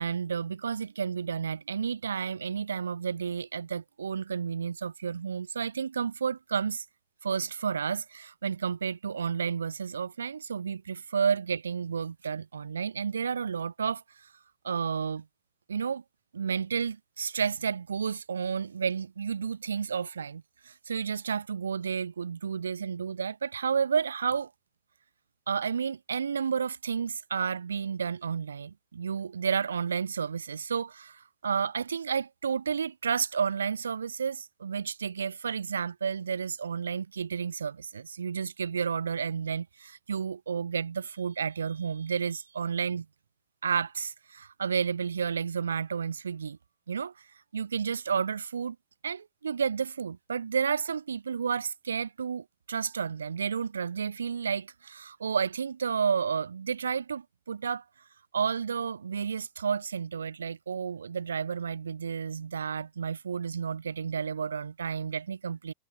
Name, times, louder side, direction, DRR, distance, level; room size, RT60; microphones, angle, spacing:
voice 1, 0.0-6.9 7.2-14.3 14.6-15.3 15.7-16.0 16.3-24.5 25.5-43.1 43.6-46.6 46.9-47.3 47.5-48.8 49.0-57.8 58.3-65.7, right 6 dB, 80° right, 0.7 m, -31 dB
figure-of-eight pair, 90°, 0 cm